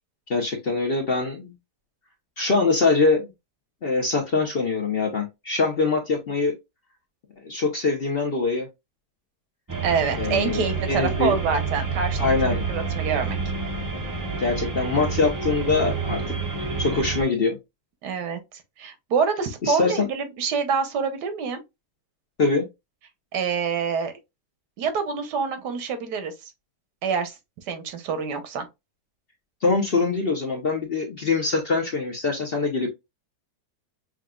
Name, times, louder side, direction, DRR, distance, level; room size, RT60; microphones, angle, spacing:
voice 1, 0.3-1.5 2.4-3.3 3.8-6.5 7.4-8.7 10.2-11.4 12.2-12.6 14.4-16.4 16.8-17.6 19.6-20.1 22.4-22.7 29.6-32.9, left 3 dB, 50° left, 0.7 m, -23 dB
sound 1, 9.7-17.2, right 4 dB, 30° right, 0.4 m, -28 dB
voice 2, 9.8-13.4 18.0-18.4 18.8-21.6 23.3-24.1 24.8-26.5 27.0-27.3 27.7-28.7, right 6 dB, 85° right, 1.5 m, -26 dB
6.2 x 2.4 x 2.3 m
omnidirectional pair, 1.8 m